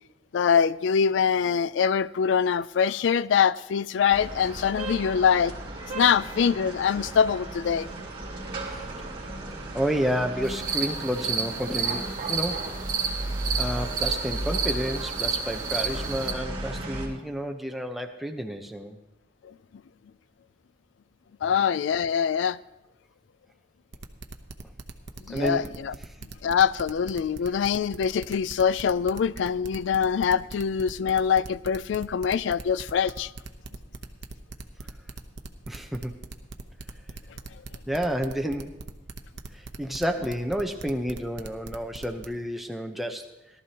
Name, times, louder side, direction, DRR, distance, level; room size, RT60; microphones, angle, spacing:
voice 1, 0.3-5.6 5.9-7.9 19.4-19.5 21.4-22.6 25.3-25.9 26.4-33.3, left 7 dB, 70° left, 0.3 m, -24 dB
sound 1, 4.1-17.1, right 2 dB, 30° right, 2.8 m, -35 dB
voice 2, 9.7-12.7 13.6-19.0 25.3-25.7 35.7-36.2 37.9-38.8 39.5-43.3, equal, ahead, 0.8 m, -30 dB
sound 2, 10.4-16.3, right 6 dB, 45° right, 1.4 m, -31 dB
sound 3, 23.9-42.3, right 3 dB, 60° right, 0.8 m, -40 dB
18.0 x 12.5 x 2.9 m
head